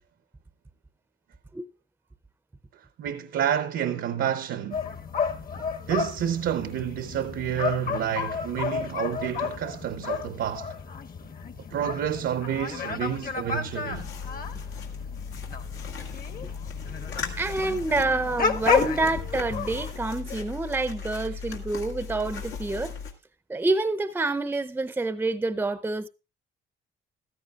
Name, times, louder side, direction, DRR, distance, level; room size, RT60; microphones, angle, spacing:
voice 1, 2.7-4.8 5.9-10.7 11.7-14.1, right 9 dB, 75° right, 0.8 m, -29 dB
sound 1, 4.7-19.9, left 5 dB, 45° left, 1.2 m, -32 dB
sound 2, 13.9-23.1, left 6 dB, 85° left, 1.9 m, -37 dB
voice 2, 17.4-23.0 23.5-26.1, right 3 dB, 10° right, 0.6 m, -27 dB
14.5 x 13.0 x 2.4 m
cardioid pair, 90°, 20 cm